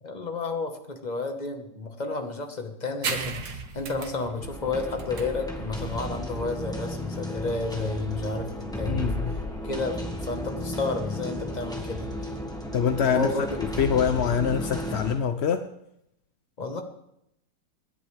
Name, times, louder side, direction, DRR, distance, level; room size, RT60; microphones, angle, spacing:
voice 1, 0.0-9.1 9.6-12.3 13.0-13.6 16.6-16.8, left 3 dB, 25° left, 5 dB, 1.4 m, -31 dB
sound 1, 3.0-10.2, right 5 dB, 90° right, 1.9 m, -38 dB
sound 2, 4.4-15.1, equal, ahead, 1.7 m, -34 dB
voice 2, 8.8-9.3 12.7-15.7, left 7 dB, 60° left, 8 dB, 0.7 m, -25 dB
28.0 x 10.5 x 3.4 m, 0.80 s
omnidirectional pair, 1.8 m